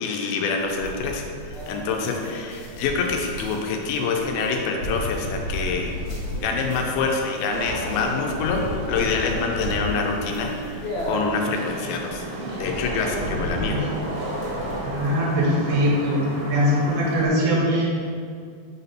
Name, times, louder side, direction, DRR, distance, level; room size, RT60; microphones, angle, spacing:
voice 1, 0.0-5.9 6.4-12.3 12.6-13.8, left 4 dB, 85° left, 2 dB, 2.5 m, -26 dB
sound 1, 0.6-15.1, left 1 dB, 65° left, 2.3 m, -34 dB
Wind / Rain, 5.8-17.3, right 1 dB, 55° right, 2.1 m, -34 dB
voice 2, 14.8-16.2 16.5-17.9, equal, 80° right, -3 dB, 2.9 m, -21 dB
6.0 x 4.1 x 5.6 m, 2.3 s
omnidirectional pair, 4.3 m